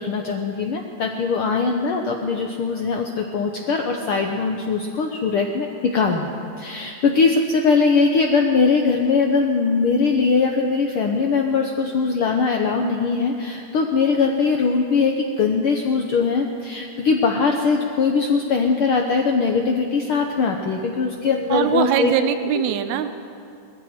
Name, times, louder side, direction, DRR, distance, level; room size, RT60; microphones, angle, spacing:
voice 1, 0.0-6.3 6.6-22.1 22.5-22.6, left 4 dB, 70° left, 2 dB, 1.3 m, -21 dB
voice 2, 21.5-23.1, right 9 dB, 85° right, 9 dB, 2.0 m, -22 dB
19.5 x 14.5 x 4.3 m, 2.5 s
omnidirectional pair, 3.3 m